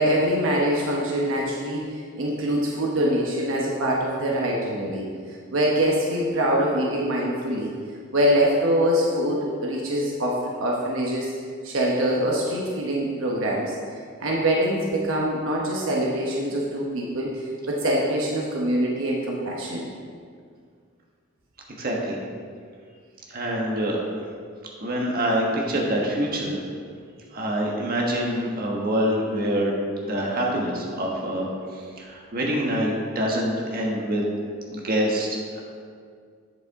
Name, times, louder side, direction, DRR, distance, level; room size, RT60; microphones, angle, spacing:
voice 1, 0.0-5.1 5.5-7.7 8.1-11.3 11.6-13.7 14.2-19.9, equal, 70° right, -2 dB, 1.0 m, -24 dB
voice 2, 21.8-22.2 23.3-24.0 24.8-26.6 27.3-29.8 30.0-34.2 34.7-35.6, equal, 45° right, -2 dB, 1.3 m, -25 dB
8.2 x 7.5 x 3.6 m, 2.1 s
head